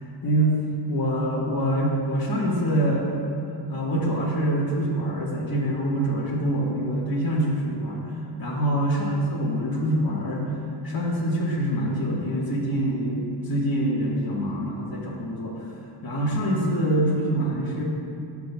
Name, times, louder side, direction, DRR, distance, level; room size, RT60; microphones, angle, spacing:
voice 1, 0.2-0.6 0.9-3.1 3.7-8.0 8.4-10.5 10.8-15.6 16.0-17.8, right 1 dB, 50° left, -4 dB, 1.4 m, -25 dB
12.5 x 5.9 x 2.2 m, 2.7 s
wide cardioid pair, 80°, 44 cm